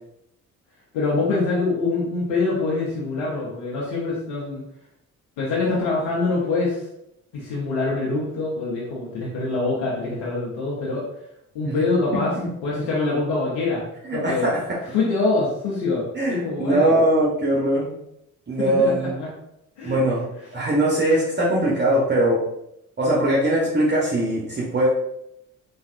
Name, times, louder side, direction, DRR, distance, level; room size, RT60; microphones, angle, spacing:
voice 1, 0.9-4.6 5.4-6.8 7.3-11.0 11.5-12.4 12.6-13.8 14.1-14.5 14.9-16.9 18.6-19.3 19.8-20.0, left 3 dB, 65° left, -5 dB, 0.8 m, -24 dB
voice 2, 12.1-12.5 14.0-14.6 16.1-17.9 18.5-19.2 19.8-22.4 23.0-24.9, right 1 dB, 25° right, -5 dB, 0.9 m, -21 dB
3.4 x 2.3 x 2.4 m, 0.79 s
figure-of-eight pair, 45°, 42 cm